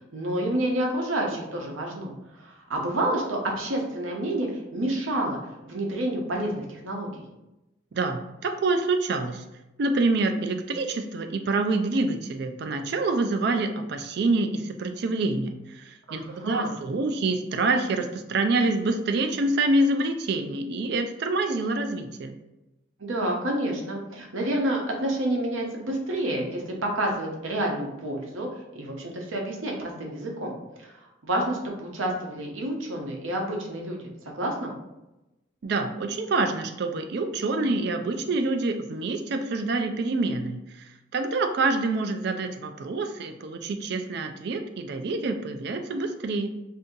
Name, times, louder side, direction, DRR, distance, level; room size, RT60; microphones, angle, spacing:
voice 1, 0.1-5.4 5.6-7.2 16.1-16.7 23.0-28.5 28.7-30.5 30.8-31.0 31.2-34.0 34.3-34.7, right 1 dB, 85° right, 1 dB, 0.7 m, -29 dB
voice 2, 7.9-9.4 9.8-22.4 35.6-40.8 41.1-46.5, right 2 dB, 55° right, 7 dB, 0.3 m, -26 dB
2.7 x 2.6 x 3.7 m, 0.96 s
head